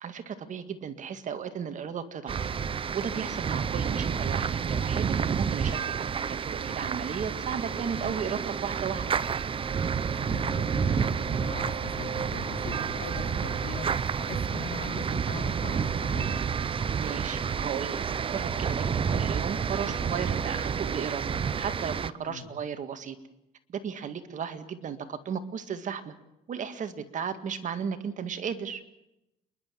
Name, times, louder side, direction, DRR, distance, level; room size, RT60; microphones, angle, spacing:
voice 1, 0.0-2.5 2.9-9.1 17.0-18.0 18.3-21.2 21.5-23.2 23.7-26.2 26.5-28.8, right 7 dB, 50° right, 9 dB, 2.0 m, -35 dB
sound 1, 2.3-22.1, right 6 dB, 30° right, 0.8 m, -30 dB
voice 2, 10.1-16.3 22.3-22.4, left 6 dB, 60° left, 4 dB, 4.5 m, -41 dB
28.5 x 11.5 x 9.2 m, 0.87 s
cardioid pair, 110°, 17 cm